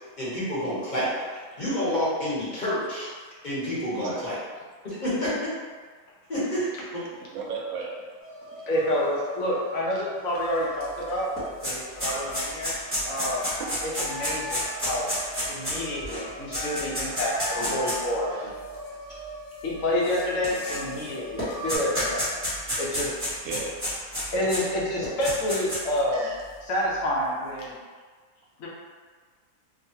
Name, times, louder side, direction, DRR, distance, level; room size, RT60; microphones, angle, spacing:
voice 1, 0.2-1.1 1.6-3.1 3.4-4.4 4.8-5.5 6.3-7.0 16.5-16.6 17.5-17.7, equal, 35° left, -10 dB, 1.0 m, -29 dB
voice 2, 7.1-7.9 8.5-8.6 9.9-10.0 12.1-13.1 13.6-13.7 15.0-15.1 18.3-18.5 23.4-23.8 26.1-26.4, right 5 dB, 85° right, -3 dB, 1.1 m, -37 dB
sound 1, 8.2-21.8, equal, 55° left, 0.7 m, -39 dB
voice 3, 8.7-11.3 11.6-12.7 13.1-13.4 13.8-15.1 15.5-17.3 17.7-18.5 19.6-22.3 22.8-23.1 24.3-26.3 26.6-27.8 28.6-28.7, left 1 dB, 75° left, -5 dB, 1.1 m, -28 dB
sound 2, 10.8-10.9 11.1-18.1 18.9-19.0 20.0-21.1 21.4-24.6 25.0-26.0, equal, 10° right, 1.0 m, -30 dB
2.8 x 2.4 x 2.7 m, 1.5 s
omnidirectional pair, 1.5 m